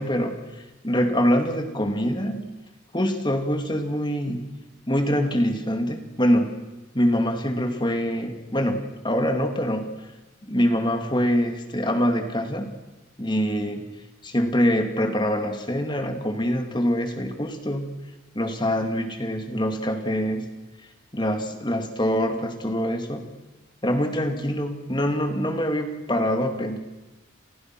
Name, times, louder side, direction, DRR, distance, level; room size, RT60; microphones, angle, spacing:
voice 1, 0.0-2.5 2.9-4.5 4.9-6.6 6.9-10.1 10.4-12.7 13.2-13.8 14.2-17.9 18.3-20.5 21.1-23.3 23.8-26.8, equal, 25° left, 5 dB, 2.6 m, -24 dB
29.5 x 29.5 x 6.2 m, 1.0 s
head